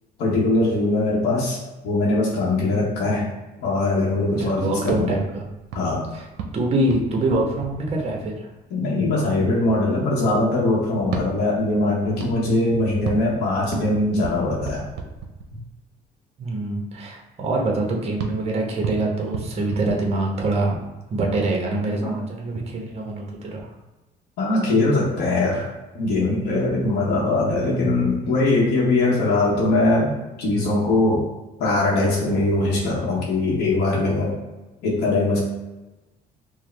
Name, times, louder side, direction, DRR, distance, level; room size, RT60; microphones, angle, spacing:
voice 1, 0.2-1.6 1.8-3.3 3.6-5.1 5.7-6.1 8.7-14.9 22.0-22.1 24.4-25.7 25.9-31.3 31.6-34.3 34.8-35.4, left 2 dB, 85° left, -5 dB, 0.9 m, -21 dB
voice 2, 4.3-5.4 6.1-6.2 6.5-8.5 16.4-20.8 21.1-23.7, right 2 dB, 40° right, 0 dB, 0.8 m, -24 dB
sound 1, 4.8-8.6 11.0-15.9 18.2-20.6, right 6 dB, 80° right, 0.6 m, -35 dB
4.7 x 2.1 x 3.2 m, 1.1 s
cardioid pair, 110°, 17 cm